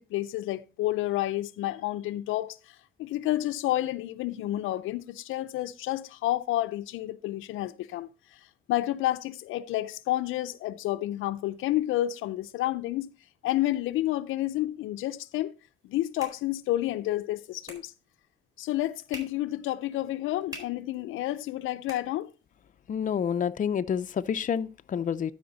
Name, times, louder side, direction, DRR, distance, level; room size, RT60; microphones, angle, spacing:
voice 1, 0.0-8.1 8.7-13.1 13.4-15.5 15.9-17.9 18.6-22.3, left 15 dB, 85° left, 0.5 m, -30 dB
sound 1, 15.6-22.7, equal, 20° right, 4.4 m, -50 dB
voice 2, 22.9-25.3, left 8 dB, 40° left, 0.5 m, -28 dB
12.5 x 5.1 x 4.0 m
cardioid pair, 90°, 20 cm